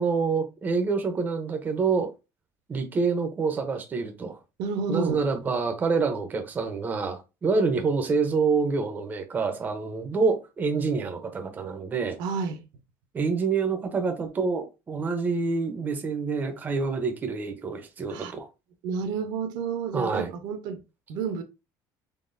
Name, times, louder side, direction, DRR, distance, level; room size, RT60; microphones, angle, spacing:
voice 1, 0.0-2.1 2.7-4.4 4.9-12.2 13.1-18.5 19.9-20.3, right 4 dB, 20° right, 0.6 m, -27 dB
voice 2, 4.6-5.2 12.2-12.6 18.1-18.3 18.8-20.8 21.1-21.4, right 5 dB, 70° right, 0.8 m, -30 dB
3.9 x 3.4 x 2.5 m
cardioid pair, 150°, 8 cm